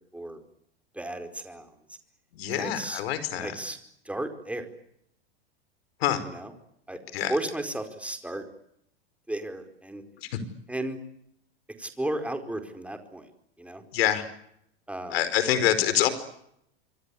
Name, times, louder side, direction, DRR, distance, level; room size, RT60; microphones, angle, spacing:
voice 1, 0.9-1.7 2.5-3.0 3.3-3.8 4.0-4.7 6.2-6.5 6.9-7.0 7.3-8.4 9.3-10.0 10.7-11.0 11.8-13.3 13.6-13.8 14.9-15.2, right 1 dB, 5° right, 7 dB, 4.6 m, -34 dB
voice 2, 2.3-3.5 6.0-6.2 7.1-7.3 10.3-10.4 13.9-14.3 15.1-16.1, left 11 dB, 75° left, 13 dB, 5.1 m, -25 dB
26.5 x 23.5 x 8.6 m, 0.74 s
hypercardioid pair, 110°, 31 cm